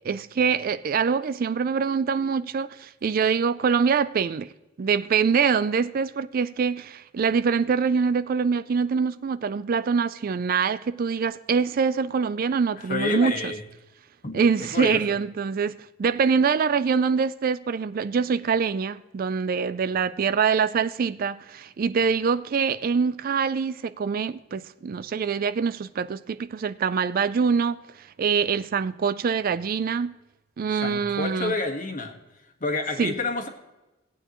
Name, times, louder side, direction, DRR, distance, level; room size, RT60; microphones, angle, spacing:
voice 1, 0.0-4.5 4.8-13.5 14.3-30.1 30.6-31.6 33.0-33.1, right 6 dB, 50° right, 0.4 m, -24 dB
voice 2, 12.8-13.6 14.2-15.2 30.7-32.1 32.6-33.5, left 3 dB, 45° left, 1.5 m, -29 dB
17.5 x 8.9 x 3.0 m
head